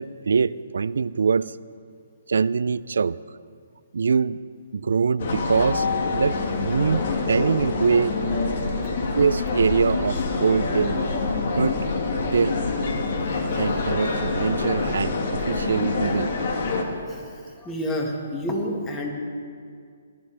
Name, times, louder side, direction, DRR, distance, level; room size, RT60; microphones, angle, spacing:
voice 1, 0.0-1.6 2.3-3.2 3.9-4.4 4.7-8.2 9.1-11.1 11.5-11.9 12.2-12.6 13.6-16.3, right 5 dB, 75° right, 18 dB, 0.3 m, -23 dB
sound 1, 5.2-16.8, left 3 dB, 55° left, 1.6 m, -26 dB
voice 2, 17.0-19.1, equal, 15° left, 1 dB, 1.7 m, -29 dB
18.0 x 12.0 x 3.3 m, 2.2 s
hypercardioid pair, 145°, 0 cm